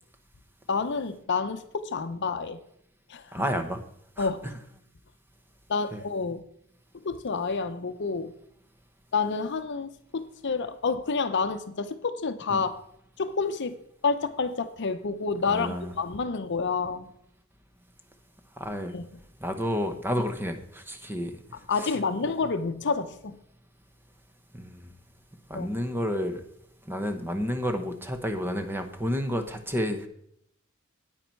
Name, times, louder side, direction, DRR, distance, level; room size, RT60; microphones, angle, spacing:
voice 1, 0.7-2.6 3.1-3.4 4.2-4.5 5.7-6.4 7.0-8.3 9.1-12.7 13.2-13.8 14.0-17.1 18.9-19.1 21.5-23.4 25.5-25.7, left 4 dB, 55° left, 10 dB, 0.7 m, -29 dB
voice 2, 3.3-3.8 4.2-4.3 5.9-6.0 12.5-12.6 15.5-15.9 18.6-18.9 19.4-21.3 21.8-21.9 24.5-24.9 25.5-26.4 26.9-30.1, equal, 10° right, 6 dB, 1.0 m, -30 dB
9.8 x 9.0 x 4.5 m, 0.70 s
head